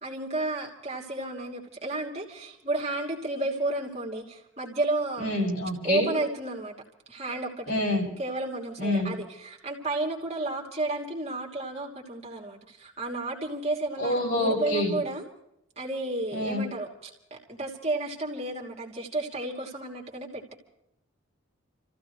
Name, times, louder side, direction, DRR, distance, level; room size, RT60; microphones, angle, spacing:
voice 1, 0.0-5.3 5.8-6.7 7.1-7.7 8.2-15.2 15.8-16.9 17.3-20.5, right 2 dB, 30° right, 0 dB, 2.9 m, -32 dB
voice 2, 5.2-6.1 7.7-8.1 8.8-9.1 14.0-15.0 16.3-16.6, left 1 dB, 70° left, -1 dB, 7.5 m, -27 dB
29.0 x 15.5 x 3.2 m, 0.78 s
head